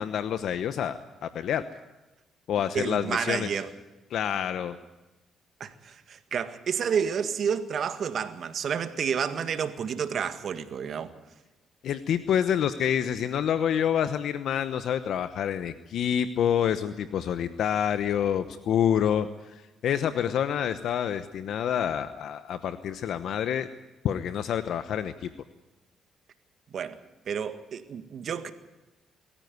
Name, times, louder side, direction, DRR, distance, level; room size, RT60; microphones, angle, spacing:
voice 1, 0.0-1.6 2.5-3.6 4.1-4.7 11.8-23.7 24.0-25.3, left 9 dB, 70° left, 0.9 m, -27 dB
voice 2, 2.7-3.7 5.6-11.1 26.7-27.0 27.3-28.5, right 7 dB, 60° right, 1.9 m, -30 dB
22.5 x 14.5 x 9.6 m
cardioid pair, 90°, 0 cm